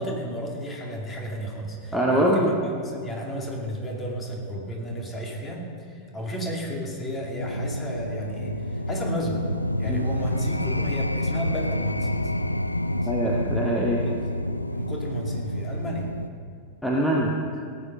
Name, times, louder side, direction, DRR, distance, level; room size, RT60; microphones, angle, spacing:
voice 1, 0.0-9.5 9.8-12.3 12.9-13.1 14.0-14.2 14.7-16.1, equal, 20° left, 0 dB, 2.6 m, -33 dB
voice 2, 1.9-2.5 9.9-10.1 13.1-14.0 16.8-17.3, right 1 dB, ahead, -3 dB, 1.4 m, -23 dB
sound 1, 7.4-16.3, left 1 dB, 85° left, 0.4 m, -28 dB
17.5 x 8.6 x 5.6 m, 2.2 s
figure-of-eight pair, 90°, 0 cm